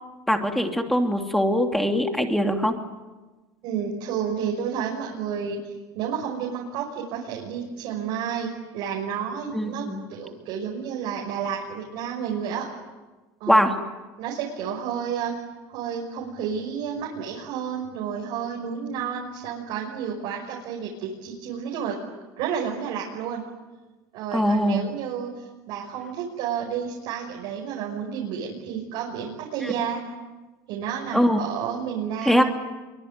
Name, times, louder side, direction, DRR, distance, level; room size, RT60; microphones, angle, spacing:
voice 1, 0.3-2.7 9.5-10.0 13.5-13.8 24.3-24.8 29.6-29.7 31.1-31.4 32.2-32.4, equal, ahead, 4 dB, 2.9 m, -21 dB
voice 2, 3.6-5.6 5.9-12.6 13.4-13.6 14.2-15.3 15.7-22.0 22.4-23.4 24.1-30.0 30.7-32.4, right 7 dB, 65° right, -2 dB, 5.9 m, -31 dB
24.5 x 24.0 x 9.7 m, 1.2 s
supercardioid pair, 130°, 9 cm